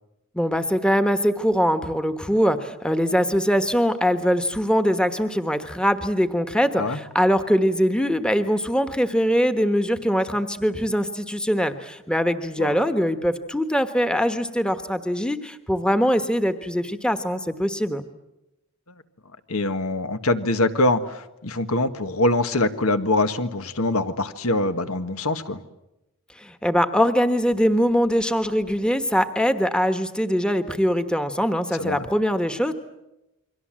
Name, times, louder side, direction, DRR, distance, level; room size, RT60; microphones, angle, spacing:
voice 1, 0.3-18.1 26.4-32.7, equal, 5° left, 9 dB, 1.2 m, -22 dB
voice 2, 19.5-25.6 31.8-32.1, left 2 dB, 85° left, 9 dB, 1.7 m, -23 dB
29.0 x 23.5 x 7.6 m, 0.91 s
head